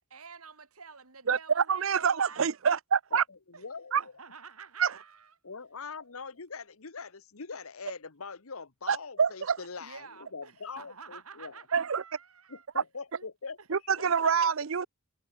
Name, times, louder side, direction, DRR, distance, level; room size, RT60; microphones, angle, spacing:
voice 1, 0.1-2.5 3.5-3.6 4.0-5.3 9.8-12.7 13.1-13.3 13.6-13.7 14.0-14.3, right 5 dB, 85° right, 3.5 m, -49 dB
voice 2, 1.3-3.2 3.9-4.0 4.8-4.9 8.9-9.6 11.7-12.0 13.7-14.9, right 6 dB, 65° right, 0.6 m, -26 dB
voice 3, 3.1-4.0 5.4-11.6 12.5-13.6 14.2-14.3, left 4 dB, 75° left, 1.3 m, -42 dB
head